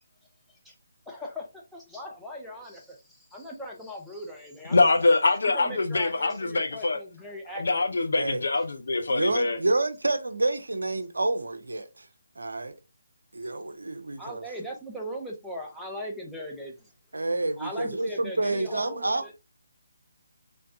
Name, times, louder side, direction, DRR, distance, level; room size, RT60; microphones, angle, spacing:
voice 1, 1.1-5.2 5.4-8.0 14.2-16.9 17.6-19.3, equal, ahead, 0.6 m, -39 dB
voice 2, 4.7-7.0 7.6-9.6, left 3 dB, 55° left, 0.6 m, -24 dB
voice 3, 9.1-12.0 12.4-12.7 13.3-14.5 17.1-19.3, right 2 dB, 65° right, 0.6 m, -28 dB
3.4 x 3.1 x 2.6 m
figure-of-eight pair, 145°, 0 cm